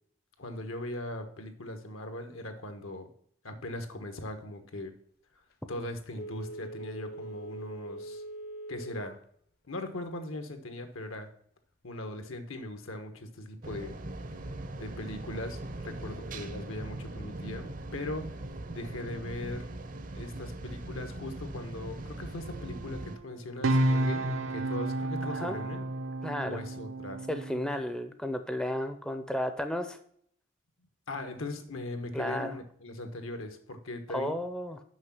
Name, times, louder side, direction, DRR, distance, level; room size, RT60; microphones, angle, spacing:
voice 1, 0.4-3.1 3.4-4.9 5.7-8.2 8.7-9.2 9.7-11.3 11.8-14.0 14.8-18.3 18.7-19.7 20.1-25.8 26.4-27.2 31.1-34.4, left 1 dB, 80° left, 7 dB, 1.2 m, -39 dB
Telephone, 6.1-9.2 9.6-9.7, right 1 dB, 50° left, 0.7 m, -42 dB
sound 1, 13.6-23.2, right 2 dB, 40° right, 0.6 m, -41 dB
sound 2, 22.4-27.8, right 1 dB, 80° right, 0.7 m, -31 dB
voice 2, 26.2-26.6 27.3-30.0 32.1-32.6 34.1-34.8, left 1 dB, 5° left, 7 dB, 0.5 m, -33 dB
6.4 x 5.6 x 5.9 m, 0.65 s
head